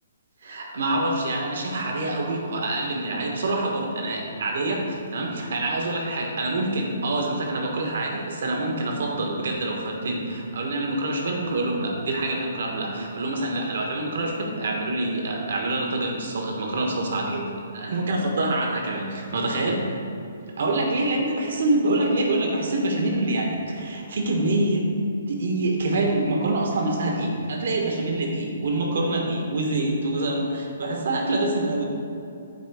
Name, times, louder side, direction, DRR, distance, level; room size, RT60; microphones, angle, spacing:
voice 1, 0.4-19.9 20.6-24.8 25.3-31.8, right 2 dB, 60° right, 0 dB, 1.3 m, -26 dB
8.3 x 3.2 x 4.8 m, 2.6 s
hypercardioid pair, 170°, 0 cm